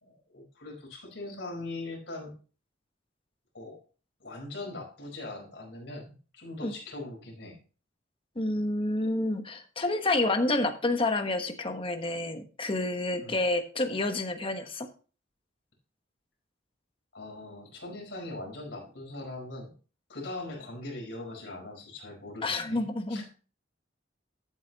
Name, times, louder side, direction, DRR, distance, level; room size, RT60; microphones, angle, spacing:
voice 1, 0.0-2.3 3.5-3.8 4.2-7.6 13.2-13.4 17.1-19.7 20.1-22.8 23.1-23.2, left 2 dB, 65° left, 0 dB, 4.8 m, -41 dB
voice 2, 8.3-14.9 22.4-23.2, left 2 dB, 30° left, 6 dB, 1.2 m, -29 dB
13.5 x 8.1 x 2.9 m, 0.37 s
head